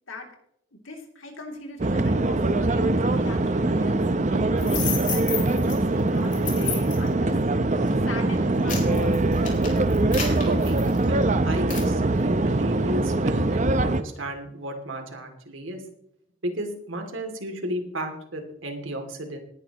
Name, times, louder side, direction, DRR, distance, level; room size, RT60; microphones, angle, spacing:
voice 1, 0.7-4.0 4.3-7.4 8.0-9.1, left 2 dB, 85° left, 2 dB, 2.9 m, -38 dB
sound 1, 1.8-14.0, right 2 dB, 40° right, 0.7 m, -23 dB
sound 2, 4.6-5.8 6.3-7.1 7.7-7.9 8.4-11.2 11.7-11.9, left 6 dB, 40° left, 3.8 m, -32 dB
voice 2, 10.5-10.8 11.1-15.8 16.4-19.4, right 1 dB, 85° right, 4 dB, 2.6 m, -33 dB
19.0 x 10.5 x 3.0 m, 0.73 s
head